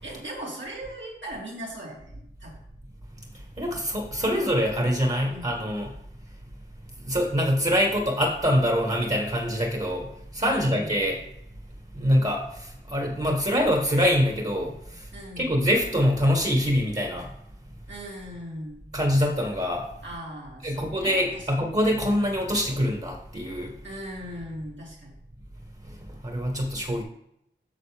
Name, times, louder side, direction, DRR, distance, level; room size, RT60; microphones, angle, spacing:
voice 1, 0.0-2.6 4.3-4.4 5.2-5.5 10.4-10.9 15.1-15.6 17.9-18.9 20.0-21.5 23.8-25.1, right 1 dB, 70° right, -4 dB, 2.8 m, -39 dB
voice 2, 3.3-5.9 7.0-11.2 11.9-15.1 15.4-17.3 18.9-19.9 20.6-23.7 25.8-27.0, equal, 35° right, 1 dB, 1.6 m, -25 dB
9.6 x 6.5 x 3.5 m, 0.76 s
wide cardioid pair, 65°, 20 cm